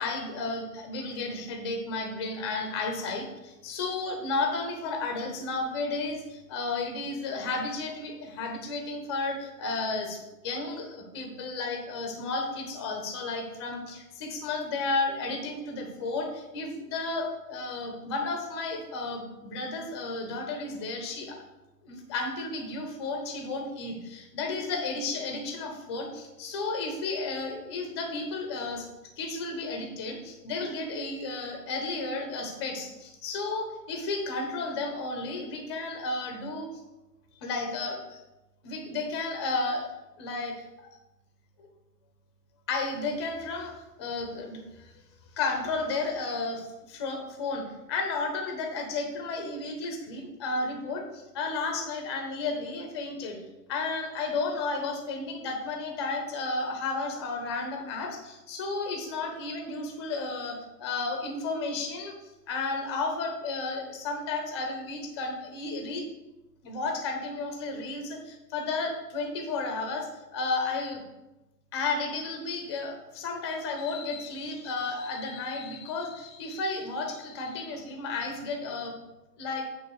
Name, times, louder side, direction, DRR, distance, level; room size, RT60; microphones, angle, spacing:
voice 1, 0.0-21.4 21.8-28.9 29.2-36.7 37.4-38.2 38.6-39.9 40.2-40.7 42.7-43.7 44.0-44.9 45.4-53.4 53.7-62.1 62.5-66.1 66.6-71.0 71.7-79.0 79.4-79.6, left 3 dB, 15° left, 4 dB, 0.8 m, -33 dB
8.2 x 3.6 x 6.6 m, 1.0 s
hypercardioid pair, 145°, 49 cm